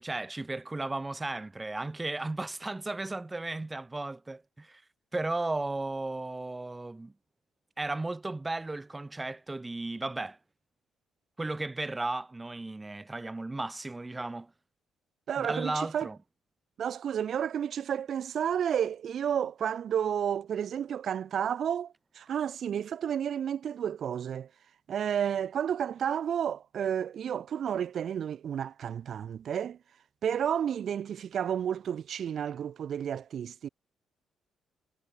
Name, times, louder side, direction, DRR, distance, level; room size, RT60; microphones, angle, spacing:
voice 1, 0.0-4.8 5.1-7.1 7.8-10.4 11.4-14.5 15.4-16.2, right 2 dB, 15° right, 7.7 m, -35 dB
voice 2, 15.3-16.1 16.8-24.5 24.9-29.8 30.2-33.7, right 9 dB, 60° right, 2.2 m, -31 dB
cardioid pair, 90°, 0 cm